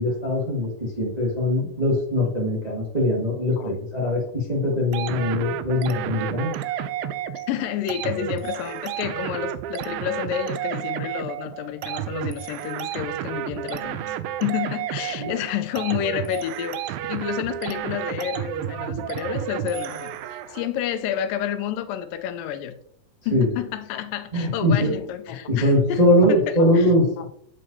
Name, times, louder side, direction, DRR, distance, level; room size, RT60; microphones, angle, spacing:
voice 1, 0.0-6.5 15.2-15.3 20.5-20.6 23.3-23.5 24.3-25.0 25.3-27.3, left 1 dB, 20° right, 1.1 m, -22 dB
sound 1, 4.9-20.7, right 11 dB, 90° right, 2.3 m, -31 dB
voice 2, 7.4-14.2 14.4-22.8 23.3-26.9 27.2-27.3, left 10 dB, 90° left, 2.3 m, -30 dB
7.7 x 7.5 x 2.8 m
omnidirectional pair, 3.9 m